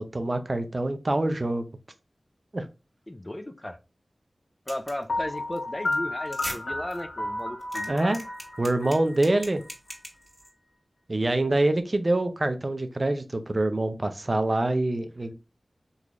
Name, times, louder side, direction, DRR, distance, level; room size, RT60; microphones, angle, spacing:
voice 1, 0.0-1.6 2.5-2.7 7.9-8.2 8.6-9.6 11.1-15.3, right 2 dB, 45° right, 0.5 m, -25 dB
voice 2, 3.1-3.8 4.7-8.2, left 1 dB, 25° left, 0.4 m, -35 dB
sound 1, 4.7-5.0 5.4-5.6 5.9-6.0 6.3-6.6 6.9-7.0 7.4-10.5, equal, ahead, 1.9 m, -39 dB
Piano, 5.1-9.9, left 2 dB, 90° left, 0.8 m, -32 dB
3.8 x 3.0 x 2.4 m
wide cardioid pair, 50°, 0 cm